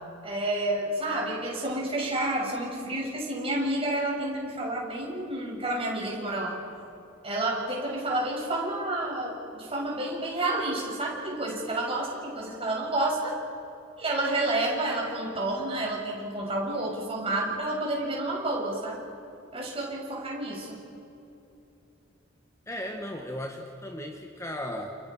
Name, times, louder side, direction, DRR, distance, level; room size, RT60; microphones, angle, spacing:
voice 1, 0.2-6.6 7.2-13.3 14.0-19.0 19.5-20.8, right 1 dB, 30° right, -2 dB, 6.9 m, -30 dB
voice 2, 22.7-25.0, left 1 dB, 15° left, 3 dB, 1.5 m, -36 dB
30.0 x 29.5 x 5.6 m, 2.8 s
head